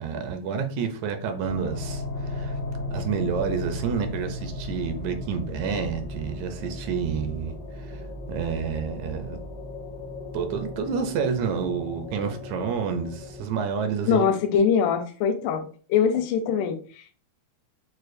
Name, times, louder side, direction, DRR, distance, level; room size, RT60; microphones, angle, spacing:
voice 1, 0.0-2.6 2.9-9.4 10.3-14.2, right 6 dB, 80° right, 6 dB, 1.8 m, -29 dB
sound 1, 1.4-13.4, left 1 dB, 70° left, 0.9 m, -36 dB
voice 2, 14.1-15.6 15.9-17.1, left 7 dB, 90° left, 6 dB, 2.1 m, -23 dB
6.4 x 2.3 x 2.5 m, 0.41 s
omnidirectional pair, 3.5 m